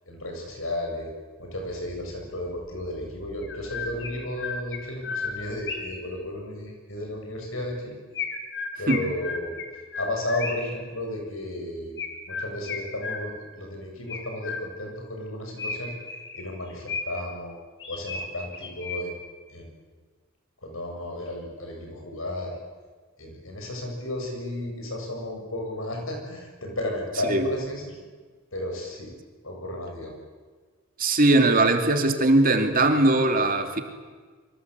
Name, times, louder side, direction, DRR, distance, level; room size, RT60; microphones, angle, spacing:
voice 1, 0.1-1.1 1.4-8.0 8.8-9.6 9.9-12.0 12.3-15.9 16.3-17.6 17.9-19.2 19.5-19.7 20.6-22.6 23.2-28.0 28.5-29.1 29.4-30.1, left 1 dB, 75° left, 2 dB, 7.9 m, -33 dB
Chirp tweet, 2.6-2.7 3.4-6.1 8.1-10.8 12.0-13.6 14.1-15.0 15.6-17.3 17.8-19.3, left 4 dB, 60° left, 3.9 m, -34 dB
voice 2, 31.0-33.8, right 2 dB, 45° right, 5 dB, 2.8 m, -20 dB
26.5 x 24.5 x 8.3 m, 1.4 s
head